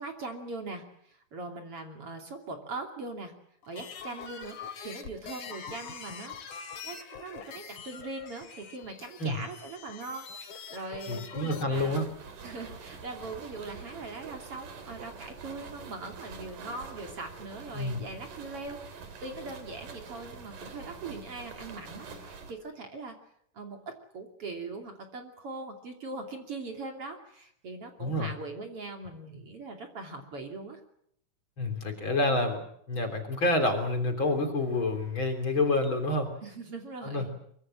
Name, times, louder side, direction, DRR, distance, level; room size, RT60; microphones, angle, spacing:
voice 1, 0.0-3.3 3.7-12.0 12.4-23.2 23.5-30.8 36.4-37.3, right 3 dB, 45° right, 3 dB, 3.6 m, -41 dB
sound 1, 3.6-11.6, left 6 dB, 70° left, 3.9 m, -44 dB
voice 2, 11.1-12.0 17.7-18.0 28.0-28.3 31.6-36.3 37.0-37.3, left 2 dB, 40° left, 5 dB, 3.9 m, -28 dB
sound 2, 11.7-22.5, right 5 dB, 85° right, 4.5 m, -45 dB
24.0 x 23.5 x 7.5 m, 0.68 s
omnidirectional pair, 3.6 m